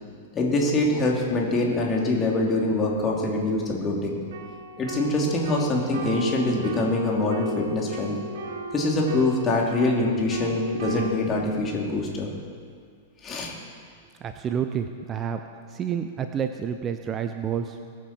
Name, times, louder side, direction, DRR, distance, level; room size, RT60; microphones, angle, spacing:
voice 1, 0.3-4.2 4.8-8.1 8.7-12.3 13.2-13.5, left 2 dB, 25° left, -2 dB, 3.2 m, -24 dB
sound 1, 4.3-11.1, equal, 60° right, 1.6 m, -35 dB
voice 2, 14.2-15.4 15.7-17.8, right 8 dB, 25° right, 8 dB, 0.8 m, -29 dB
22.5 x 9.2 x 4.5 m, 2.1 s
figure-of-eight pair, 100°, 0 cm